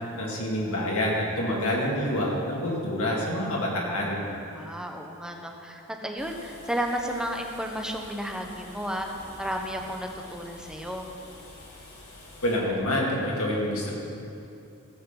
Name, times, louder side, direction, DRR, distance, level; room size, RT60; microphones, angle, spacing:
voice 1, 0.2-4.2 12.4-13.9, left 1 dB, 70° left, -3 dB, 2.5 m, -27 dB
voice 2, 4.5-9.1 9.4-11.1, equal, 5° right, 2 dB, 0.9 m, -33 dB
sound 1, 6.2-12.6, left 2 dB, 90° left, 3.4 m, -47 dB
14.5 x 7.8 x 5.4 m, 2.6 s
head